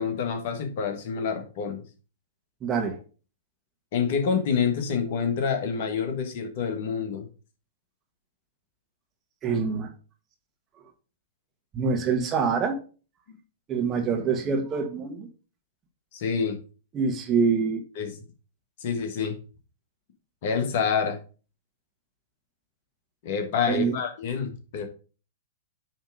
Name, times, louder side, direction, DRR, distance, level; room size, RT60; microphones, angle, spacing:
voice 1, 0.0-1.8 3.9-7.3 13.3-13.4 16.1-16.6 17.9-18.2 18.8-19.4 20.4-21.2 23.2-24.9, left 6 dB, 50° left, 5 dB, 1.7 m, -27 dB
voice 2, 2.6-3.0 9.4-9.9 11.7-12.8 13.7-15.3 16.9-17.8 23.7-24.0, right 5 dB, 25° right, 4 dB, 1.5 m, -25 dB
9.2 x 3.6 x 4.9 m, 0.36 s
figure-of-eight pair, 110°, 0 cm